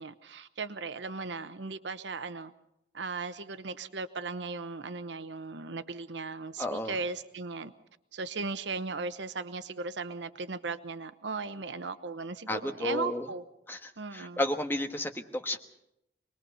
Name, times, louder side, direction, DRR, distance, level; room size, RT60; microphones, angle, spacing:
voice 1, 0.0-2.5 2.9-7.7 8.1-13.4 14.0-14.4, right 4 dB, 90° right, 11 dB, 0.9 m, -37 dB
voice 2, 6.6-6.9 12.5-13.3 13.7-15.6, left 1 dB, 10° left, 5 dB, 1.4 m, -32 dB
26.5 x 20.5 x 5.6 m, 0.82 s
head